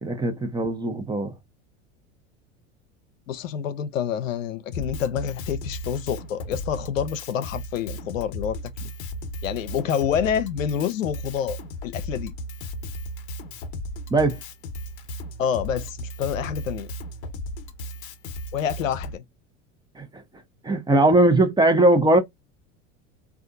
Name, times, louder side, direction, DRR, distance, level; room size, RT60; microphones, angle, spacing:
voice 1, 0.0-1.3 14.1-14.4 20.0-20.2 20.6-22.2, right 2 dB, 10° right, 0.8 m, -20 dB
voice 2, 3.3-8.9 9.4-11.6 11.8-12.3 15.4-16.9 18.5-19.2, left 8 dB, 90° left, 0.6 m, -27 dB
Drum kit, 4.7-19.1, equal, 70° left, 1.0 m, -35 dB
3.5 x 2.4 x 2.5 m
hypercardioid pair, 85°, 38 cm